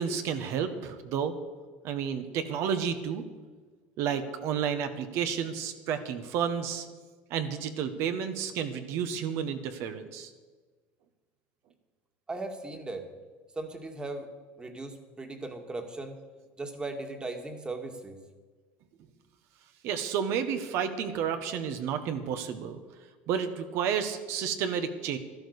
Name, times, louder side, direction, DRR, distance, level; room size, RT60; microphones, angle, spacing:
voice 1, 0.0-1.3 1.8-3.2 4.0-6.9 7.3-10.3 19.8-22.8 23.3-25.2, right 7 dB, 65° right, 8 dB, 1.5 m, -31 dB
voice 2, 12.3-13.1 13.5-14.3 14.6-16.2 16.6-18.2, right 2 dB, 20° right, 5 dB, 2.0 m, -38 dB
13.0 x 11.5 x 6.7 m, 1.4 s
supercardioid pair, 110°, 5 cm